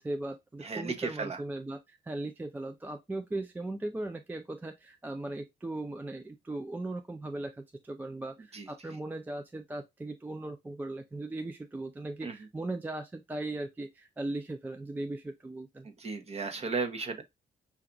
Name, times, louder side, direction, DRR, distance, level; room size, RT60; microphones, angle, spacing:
voice 1, 0.0-15.9, right 2 dB, 10° right, 0.3 m, -38 dB
voice 2, 0.6-1.4 8.5-8.7 12.2-12.4 16.0-17.2, right 4 dB, 35° right, 0.8 m, -34 dB
5.8 x 2.4 x 3.7 m
wide cardioid pair, 175°, 18 cm